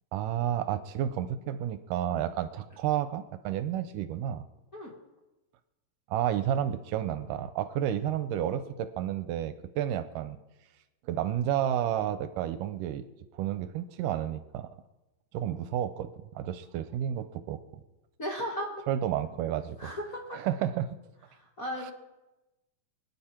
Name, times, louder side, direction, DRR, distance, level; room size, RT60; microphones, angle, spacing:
voice 1, 0.1-4.4 6.1-10.4 11.0-13.0 13.3-14.7 15.3-17.6 18.9-19.8 20.3-21.0 21.8-21.9, right 10 dB, 80° right, 11 dB, 2.2 m, -31 dB
voice 2, 18.2-18.8 19.8-20.4 21.3-21.9, equal, 35° left, -3 dB, 1.4 m, -36 dB
24.5 x 9.6 x 4.4 m, 1.0 s
omnidirectional pair, 4.0 m